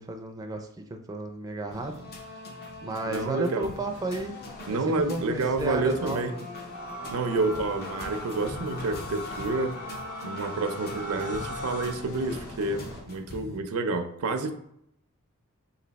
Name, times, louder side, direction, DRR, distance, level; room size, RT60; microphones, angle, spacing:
voice 1, 0.0-2.5 2.8-4.4 4.7-6.4, right 2 dB, 15° right, 3 dB, 0.4 m, -33 dB
sound 1, 1.7-13.6, left 1 dB, 45° left, 0.6 m, -42 dB
voice 2, 3.1-3.7 4.7-6.3 7.1-9.8 10.2-14.5, right 3 dB, 85° right, 8 dB, 0.5 m, -29 dB
sound 2, 3.7-13.0, left 1 dB, 60° left, 1.1 m, -47 dB
sound 3, 6.7-11.9, left 1 dB, 85° left, 1.2 m, -38 dB
3.2 x 2.7 x 4.0 m, 0.74 s
head